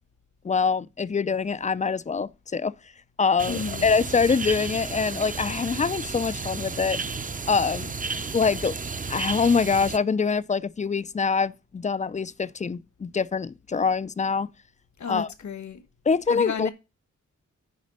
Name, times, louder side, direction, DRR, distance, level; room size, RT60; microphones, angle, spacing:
voice 1, 0.4-2.7 3.2-7.0 7.5-7.9 8.3-8.7 9.1-14.5 15.1-15.3 16.1-16.7, left 5 dB, 25° left, 0.4 m, -24 dB
sound 1, 3.4-10.0, right 4 dB, 25° right, 0.6 m, -33 dB
voice 2, 3.5-3.9 15.0-15.8 16.3-16.7, left 5 dB, 65° left, 1.3 m, -32 dB
10.5 x 4.3 x 5.3 m
wide cardioid pair, 100°, 31 cm